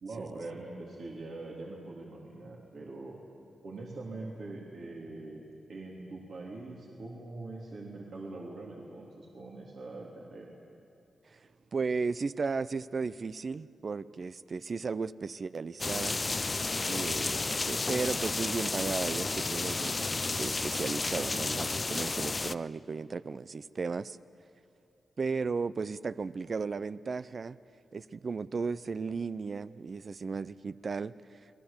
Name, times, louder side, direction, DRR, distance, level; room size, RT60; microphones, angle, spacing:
voice 1, 0.0-3.2 3.6-5.4 5.7-10.5, right 2 dB, 70° right, -3 dB, 3.2 m, -43 dB
voice 2, 11.7-16.2 16.8-24.2 25.2-27.6 27.9-31.1, right 4 dB, 50° right, 15 dB, 0.5 m, -35 dB
sound 1, 15.8-22.5, left 3 dB, 35° left, 0.5 m, -32 dB
29.5 x 20.0 x 7.2 m, 2.7 s
cardioid pair, 70°, 0 cm